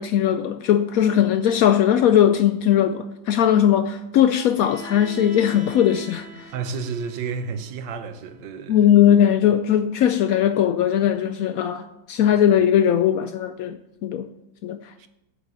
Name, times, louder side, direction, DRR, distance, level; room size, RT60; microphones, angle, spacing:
voice 1, 0.0-6.5 8.7-14.3 14.6-14.8, left 10 dB, 85° left, 0.7 m, -19 dB
Bowed string instrument, 4.6-8.5, right 2 dB, 40° right, 0.8 m, -43 dB
voice 2, 6.5-8.9 12.4-12.5 15.0-15.1, right 5 dB, 75° right, 1.5 m, -31 dB
8.7 x 6.8 x 7.0 m
omnidirectional pair, 2.1 m